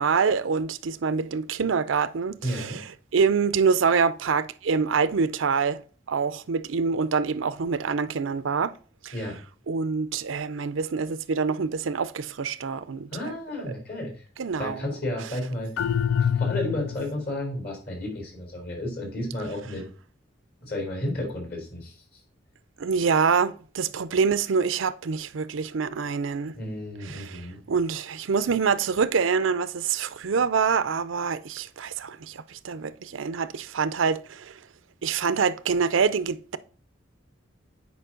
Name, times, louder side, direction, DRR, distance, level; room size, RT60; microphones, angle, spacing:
voice 1, 0.0-5.8 6.1-8.7 9.0-9.1 9.7-13.3 13.7-13.8 14.4-14.8 22.8-26.6 27.0-27.4 27.7-34.6 35.0-36.6, right 5 dB, 90° right, 0.5 m, -26 dB
voice 2, 2.4-2.8 9.1-9.4 13.1-14.2 14.6-15.9 16.2-19.8 20.6-22.2 26.5-27.6, left 1 dB, 50° left, 3.9 m, -32 dB
sound 1, 15.8-17.2, left 8 dB, 90° left, 0.3 m, -25 dB
9.3 x 5.1 x 3.8 m
head